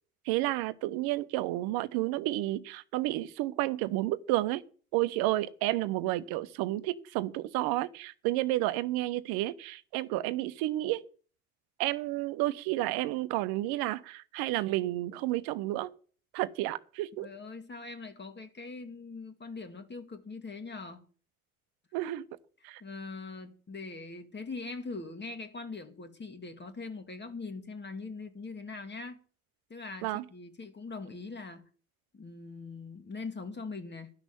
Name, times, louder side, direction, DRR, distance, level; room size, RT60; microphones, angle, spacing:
voice 1, 0.3-4.6 4.9-11.0 11.8-15.9 16.3-17.3 21.9-22.3 22.6-22.8 30.0-30.2, right 16 dB, 55° right, 0.9 m, -31 dB
voice 2, 17.2-21.1 22.8-29.2 29.7-31.6 32.1-34.1, left 3 dB, 25° left, 1.7 m, -42 dB
12.0 x 6.2 x 9.0 m
figure-of-eight pair, 55°, 43 cm